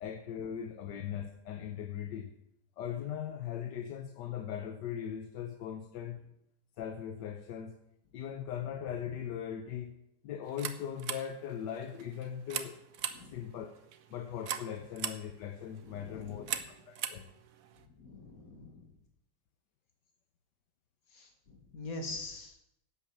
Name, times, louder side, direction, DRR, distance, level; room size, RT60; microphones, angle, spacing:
voice 1, 0.0-2.3 2.8-6.2 6.8-7.8 8.1-9.9 10.2-12.8 13.3-13.7 14.1-16.6 16.9-17.3, left 9 dB, 80° left, 7 dB, 1.4 m, -39 dB
sound 1, 10.4-17.9, right 9 dB, 60° right, 1.1 m, -42 dB
voice 2, 15.8-16.6 18.0-18.9 21.1-22.6, left 2 dB, 55° left, 4 dB, 2.4 m, -44 dB
11.0 x 8.6 x 7.2 m, 0.80 s
omnidirectional pair, 1.9 m